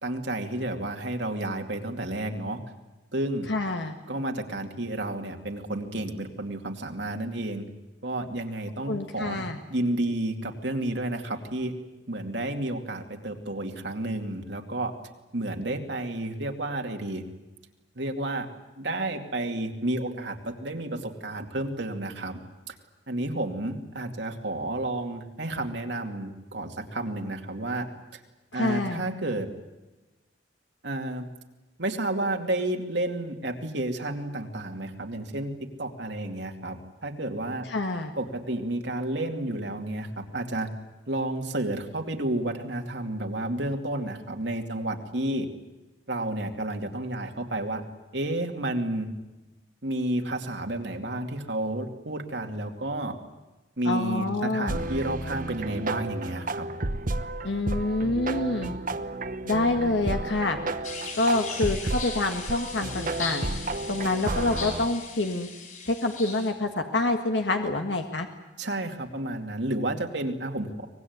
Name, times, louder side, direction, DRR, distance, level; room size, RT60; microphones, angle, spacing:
voice 1, 0.0-2.6 3.1-3.5 4.1-7.7 8.0-11.7 12.1-14.9 15.3-17.2 18.0-18.5 18.8-22.4 22.7-22.8 23.1-27.9 28.1-28.2 28.5-29.5 30.8-31.3 31.8-35.5 35.8-37.7 38.2-40.7 41.1-45.5 46.1-47.8 48.1-49.1 49.8-53.1 53.8-56.7 68.6-70.9, right 1 dB, 65° right, 3 dB, 2.5 m, -31 dB
voice 2, 3.5-4.0 8.9-9.6 28.5-29.0 37.7-38.1 53.8-54.8 57.4-58.7 59.5-60.6 61.1-63.5 63.9-65.5 65.9-68.3, left 2 dB, 70° left, 5 dB, 1.7 m, -27 dB
sound 1, 54.7-64.9, right 2 dB, 45° right, 1.1 m, -32 dB
sound 2, 60.8-66.5, left 5 dB, 45° left, 5.8 m, -38 dB
24.5 x 19.5 x 9.5 m, 1.1 s
head